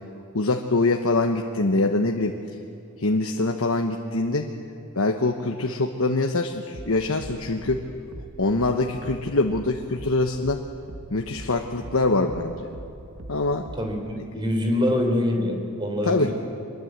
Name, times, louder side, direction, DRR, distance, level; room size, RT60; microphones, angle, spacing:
voice 1, 0.3-2.4 3.0-4.5 4.9-7.8 8.4-10.6 11.1-12.7 13.3-13.7 16.1-16.3, left 2 dB, 70° left, 3 dB, 1.1 m, -24 dB
sound 1, 6.7-14.1, right 1 dB, 85° right, 1.1 m, -42 dB
voice 2, 13.8-16.3, left 1 dB, 20° right, 3 dB, 3.7 m, -25 dB
24.0 x 21.5 x 8.1 m, 2.8 s
head